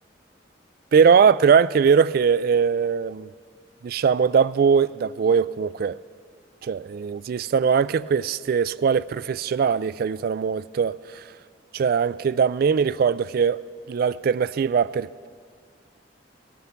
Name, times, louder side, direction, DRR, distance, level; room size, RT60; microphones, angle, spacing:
voice 1, 0.9-3.3 3.8-6.0 6.6-11.2 11.7-13.6 13.9-15.3, right 6 dB, 55° right, 0.3 m, -21 dB
17.0 x 13.0 x 5.8 m
head